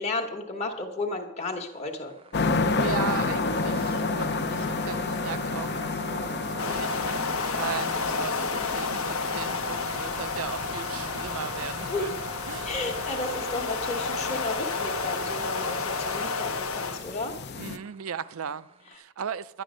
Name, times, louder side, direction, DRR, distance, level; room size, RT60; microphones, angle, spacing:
voice 1, 0.0-2.1 11.9-12.1 12.6-17.3, left 2 dB, 30° left, 1.1 m, -33 dB
sound 1, 1.4-19.0, right 5 dB, 25° right, 0.5 m, -44 dB
sound 2, 2.3-17.8, left 3 dB, 50° left, 0.6 m, -32 dB
voice 2, 2.8-12.2 12.5-12.7 17.6-19.6, right 7 dB, 80° right, 0.5 m, -37 dB
sound 3, 6.6-17.0, left 4 dB, 85° left, 1.0 m, -31 dB
11.0 x 10.5 x 6.3 m
head